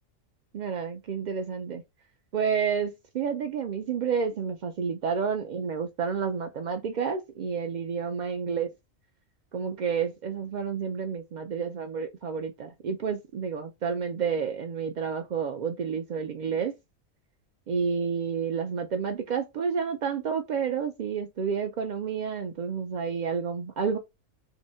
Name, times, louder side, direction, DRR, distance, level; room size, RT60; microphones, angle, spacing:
voice 1, 0.5-1.8 2.3-8.7 9.5-16.7 17.7-24.0, right 6 dB, 80° right, 0.4 m, -30 dB
2.8 x 2.7 x 4.2 m
omnidirectional pair, 1.3 m